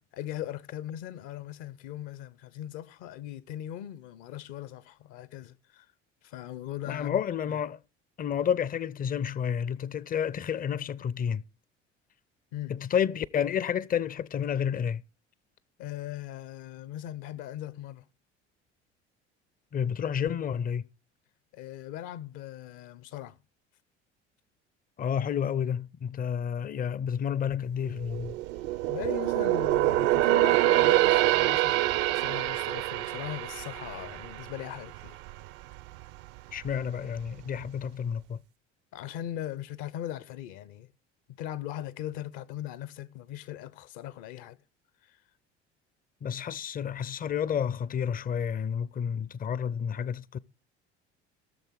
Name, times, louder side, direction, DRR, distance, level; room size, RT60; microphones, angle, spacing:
voice 1, 0.0-5.9 6.2-7.2 7.5-7.6 12.5-12.7 15.8-18.1 21.5-23.4 28.5-35.2 38.9-40.9 41.3-44.6 45.0-45.2, left 12 dB, 60° left, 0.9 m, -39 dB
voice 2, 6.9-7.8 8.2-11.4 12.7-15.0 19.7-20.9 25.0-28.4 36.5-38.4 46.2-50.4, left 8 dB, 25° left, 0.5 m, -30 dB
sound 1, 27.9-35.4 35.8-36.0 36.6-37.3 37.6-37.7, right 17 dB, 65° right, 0.6 m, -26 dB
16.0 x 6.8 x 4.7 m
hypercardioid pair, 60°, 34 cm